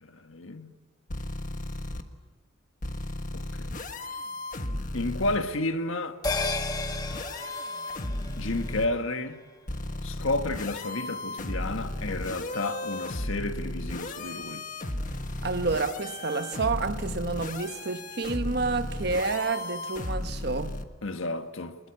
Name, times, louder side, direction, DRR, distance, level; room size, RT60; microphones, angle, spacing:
voice 1, 0.0-0.7 3.3-3.9 4.9-6.2 8.3-9.4 10.0-14.6 21.0-21.8, left 2 dB, 75° left, 1.6 m, -31 dB
sound 1, 1.1-2.0 2.8-5.4 6.2-8.9 9.7-20.8, left 1 dB, 40° left, 1.4 m, -35 dB
sound 2, 6.2-11.0 11.3-11.4, left 3 dB, 20° left, 1.1 m, -36 dB
voice 2, 15.4-20.7, right 3 dB, 50° right, 1.0 m, -29 dB
25.0 x 21.0 x 8.4 m
head